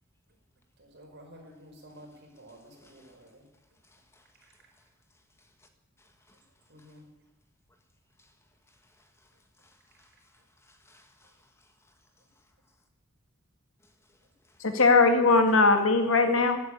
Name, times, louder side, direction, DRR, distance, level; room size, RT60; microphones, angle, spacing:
voice 1, 0.8-3.4 6.7-7.0, equal, 55° right, 2 dB, 4.7 m, -51 dB
voice 2, 2.8-3.2 3.8-4.3 6.3-6.4 6.8-6.9 8.2-8.3 9.0-9.3 9.6-10.1 10.6-11.7, left 2 dB, 15° left, 5 dB, 1.6 m, -63 dB
voice 3, 14.6-16.6, left 3 dB, 75° left, 6 dB, 2.2 m, -20 dB
15.5 x 9.5 x 9.8 m, 1.0 s
head